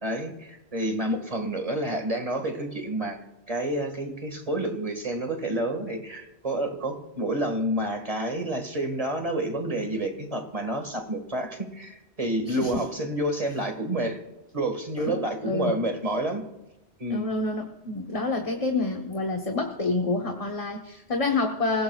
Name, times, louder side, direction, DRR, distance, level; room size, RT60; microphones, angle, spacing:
voice 1, 0.0-3.2 3.5-14.2 14.5-16.4 17.0-17.3, right 1 dB, 35° right, 5 dB, 1.9 m, -29 dB
voice 2, 12.5-12.8 15.0-15.2 15.4-15.8 17.1-21.8, left 3 dB, 35° left, 2 dB, 1.2 m, -28 dB
25.5 x 17.0 x 2.4 m, 0.94 s
omnidirectional pair, 1.1 m